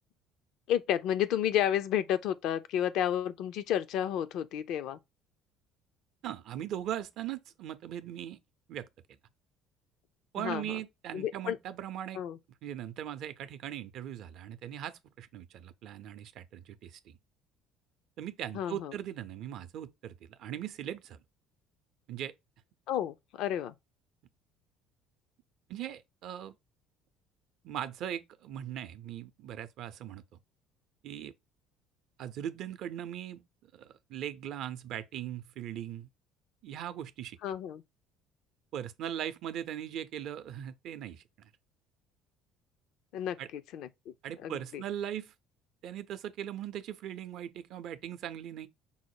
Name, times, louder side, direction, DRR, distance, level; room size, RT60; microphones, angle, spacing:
voice 1, 0.7-5.0 10.4-10.7 11.1-11.6 12.1-12.4 18.5-18.9 22.9-23.7 37.4-37.8 43.1-44.1 44.4-44.8, left 10 dB, 65° left, 0.4 m, -31 dB
voice 2, 6.2-8.4 8.7-8.9 10.3-12.2 12.6-17.2 18.2-21.2 22.1-22.3 25.7-26.5 27.6-30.2 31.0-31.3 32.2-36.1 36.6-37.4 38.7-41.2 43.4-43.5 44.2-45.3 45.8-48.7, right 10 dB, 60° right, 0.5 m, -39 dB
5.5 x 2.1 x 4.6 m
hypercardioid pair, 60°, 0 cm